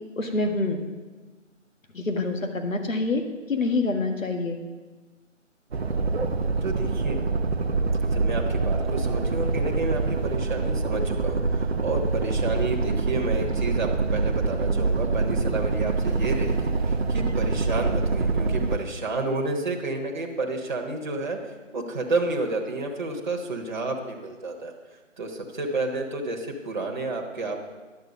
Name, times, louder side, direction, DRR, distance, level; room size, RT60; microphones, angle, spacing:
voice 1, 0.2-0.8 1.9-4.6, left 3 dB, 85° left, 5 dB, 1.6 m, -26 dB
sound 1, 5.7-18.8, right 3 dB, 55° right, 0.8 m, -25 dB
voice 2, 6.6-7.2 8.0-24.7 25.2-27.6, right 2 dB, 35° right, 0 dB, 1.2 m, -30 dB
11.0 x 7.4 x 5.1 m, 1.3 s
figure-of-eight pair, 165°, 39 cm